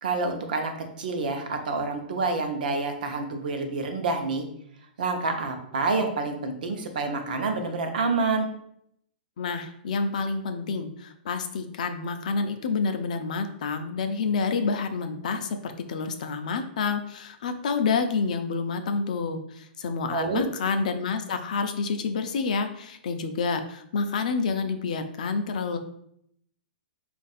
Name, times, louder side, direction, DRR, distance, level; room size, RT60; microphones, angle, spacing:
voice 1, 0.0-0.7 1.0-4.5 5.0-8.5 20.1-20.5, right 3 dB, 55° right, 4 dB, 0.8 m, -28 dB
voice 2, 9.4-25.8, left 4 dB, 45° left, 7 dB, 0.5 m, -28 dB
4.5 x 2.5 x 4.0 m, 0.71 s
hypercardioid pair, 180°, 6 cm